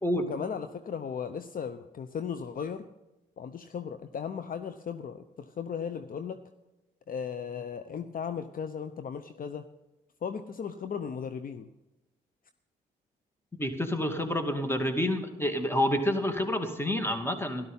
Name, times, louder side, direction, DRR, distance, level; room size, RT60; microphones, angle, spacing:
voice 1, 0.1-2.9 3.4-6.4 7.1-9.7 10.2-11.7, left 7 dB, 50° left, 10 dB, 0.8 m, -36 dB
voice 2, 13.6-17.7, left 1 dB, 15° left, 7 dB, 2.5 m, -28 dB
12.5 x 12.5 x 5.6 m, 0.97 s
supercardioid pair, 60°, 18 cm